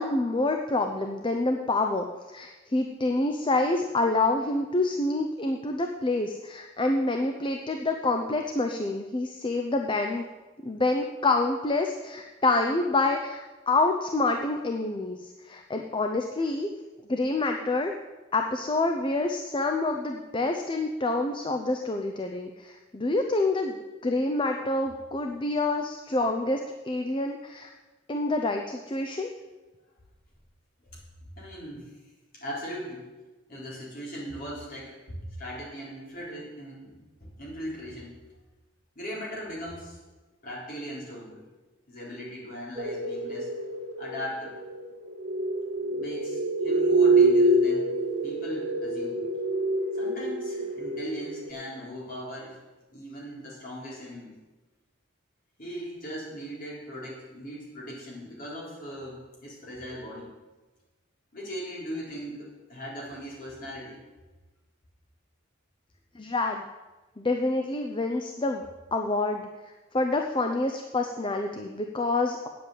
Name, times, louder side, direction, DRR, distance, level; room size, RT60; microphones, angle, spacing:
voice 1, 0.0-10.2 10.6-16.7 17.1-17.9 18.3-27.7 28.1-29.3 66.1-66.6 67.2-72.5, left 2 dB, 25° left, 4 dB, 0.6 m, -27 dB
voice 2, 31.4-32.0 32.3-33.1 33.5-38.2 39.0-40.0 40.4-41.4 41.9-43.5 44.0-44.6 45.8-49.3 49.9-52.6 52.9-54.3 55.6-60.3 61.3-64.0, equal, 45° left, -5 dB, 4.0 m, -39 dB
sound 1, 42.8-51.5, right 2 dB, 50° right, 2.0 m, -26 dB
9.0 x 7.7 x 8.1 m, 1.2 s
head